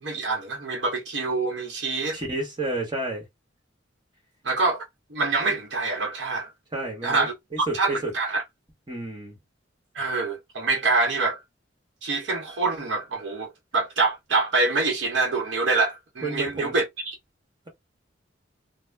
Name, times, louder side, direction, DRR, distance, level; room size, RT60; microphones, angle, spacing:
voice 1, 0.0-2.2 4.4-4.8 5.1-6.5 7.0-8.4 9.9-11.4 12.0-17.2, right 3 dB, 75° right, 0.9 m, -25 dB
voice 2, 2.1-3.3 6.7-8.1 8.9-9.4 16.2-16.7, right 2 dB, 25° right, 1.1 m, -31 dB
2.4 x 2.1 x 3.3 m
head